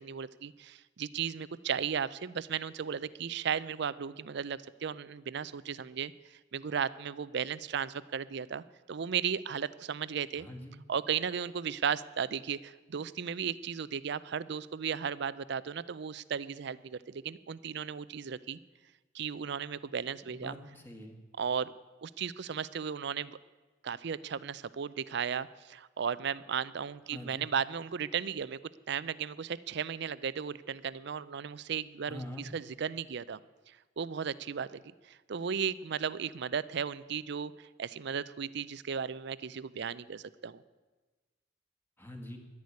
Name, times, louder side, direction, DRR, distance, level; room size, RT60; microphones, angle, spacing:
voice 1, 0.0-6.1 6.5-10.5 10.9-18.6 19.1-20.5 21.4-21.7 22.0-23.4 23.8-28.6 28.9-33.4 33.7-40.6, right 7 dB, 65° right, 17 dB, 0.5 m, -35 dB
voice 2, 10.4-10.7 20.2-21.2 27.1-27.5 32.1-32.5 42.0-42.4, left 1 dB, 10° left, 3 dB, 1.8 m, -44 dB
11.0 x 10.5 x 9.5 m, 1.2 s
head